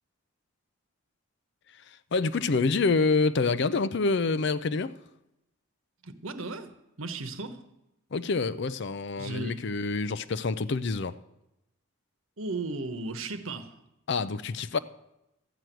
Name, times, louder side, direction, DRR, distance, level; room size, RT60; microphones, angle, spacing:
voice 1, 2.1-5.0 8.1-11.2 14.1-14.8, left 4 dB, 50° left, 0.5 m, -27 dB
voice 2, 6.0-6.7 7.0-7.6 9.2-9.7 12.4-13.7, right 3 dB, 70° right, 1.1 m, -35 dB
13.5 x 6.1 x 9.1 m
head